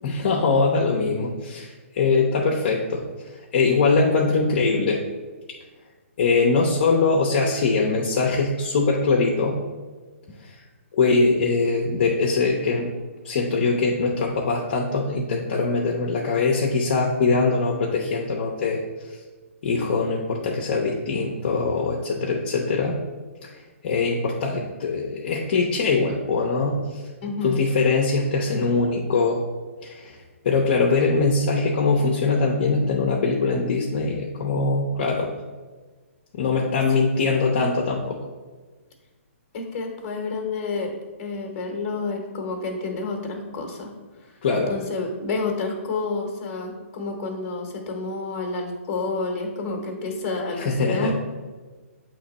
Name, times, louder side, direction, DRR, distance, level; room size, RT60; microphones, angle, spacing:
voice 1, 0.0-3.0 3.5-5.0 6.2-9.6 10.9-12.9 13.2-18.8 19.6-23.0 23.4-23.5 23.8-27.0 27.4-29.4 29.8-30.2 30.4-35.3 36.3-38.2 44.4-44.7 50.6-51.1, left 4 dB, 45° left, -1 dB, 0.7 m, -22 dB
voice 2, 27.2-27.6 37.1-37.3 39.5-43.9 44.2-44.3 44.7-51.1, left 3 dB, 30° left, 2 dB, 1.0 m, -29 dB
7.9 x 3.0 x 4.0 m, 1.3 s
hypercardioid pair, 160°, 7 cm